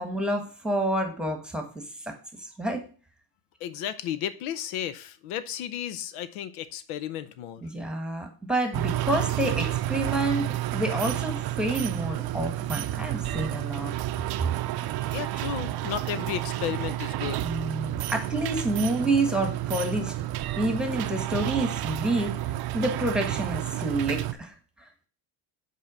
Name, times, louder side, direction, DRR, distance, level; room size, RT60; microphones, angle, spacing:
voice 1, 0.0-2.8 7.6-10.5 10.7-13.9 17.4-20.1 20.6-22.4 22.7-24.5, right 1 dB, ahead, 4 dB, 1.3 m, -28 dB
voice 2, 3.6-7.7 15.1-17.5, left 10 dB, 80° left, 13 dB, 0.7 m, -33 dB
sound 1, 8.7-24.3, right 14 dB, 50° right, 0.5 m, -30 dB
5.6 x 4.6 x 6.2 m, 0.39 s
cardioid pair, 120°, 50 cm